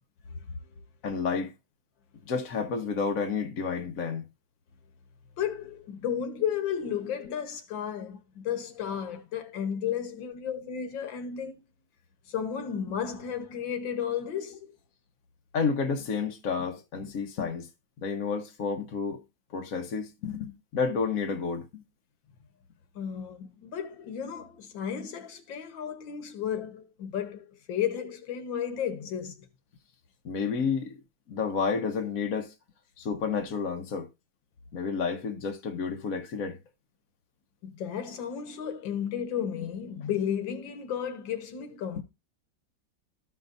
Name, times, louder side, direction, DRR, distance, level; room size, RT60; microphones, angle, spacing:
voice 1, 1.0-1.5 2.3-4.2 15.5-17.7 18.0-19.2 19.5-21.8 30.2-31.0 31.3-32.5 33.0-34.1 34.7-36.6, left 5 dB, 55° left, 1.2 m, -30 dB
voice 2, 5.4-11.5 12.3-14.7 23.0-29.4 37.6-42.0, left 8 dB, 75° left, 1.9 m, -33 dB
14.0 x 5.6 x 2.6 m
omnidirectional pair, 2.1 m